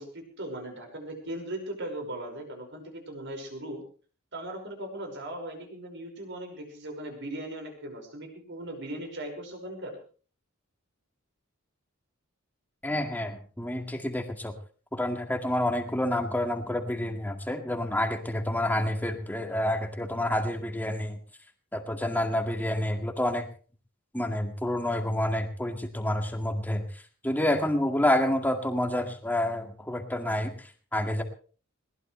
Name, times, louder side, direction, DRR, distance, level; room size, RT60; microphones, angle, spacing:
voice 1, 0.0-3.8 4.3-10.0, right 1 dB, 60° right, 3 dB, 5.8 m, -38 dB
voice 2, 12.8-14.6 14.9-21.2 21.7-23.5 24.1-31.2, left 1 dB, 10° left, 4 dB, 2.1 m, -28 dB
21.0 x 19.0 x 3.3 m, 0.41 s
head